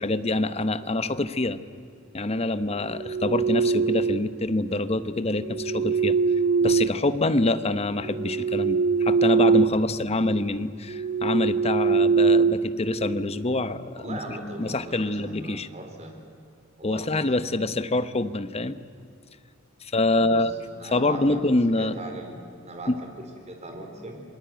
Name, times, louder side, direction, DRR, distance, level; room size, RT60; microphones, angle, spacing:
voice 1, 0.0-1.6 2.1-6.2 6.6-15.7 16.8-18.8 19.8-20.5 20.9-22.0 22.9-23.0, left 2 dB, 30° left, 13 dB, 0.9 m, -26 dB
sound 1, 2.9-4.4 5.4-7.5 8.0-9.9 10.2-10.4 10.9-13.3, right 5 dB, 55° right, 0.8 m, -23 dB
voice 2, 14.0-16.1 16.8-17.3 20.1-20.5 20.7-21.4 21.8-22.4 22.6-22.9 23.5-24.2, right 2 dB, 35° right, 3 dB, 4.4 m, -39 dB
27.5 x 21.0 x 9.3 m, 2.4 s
head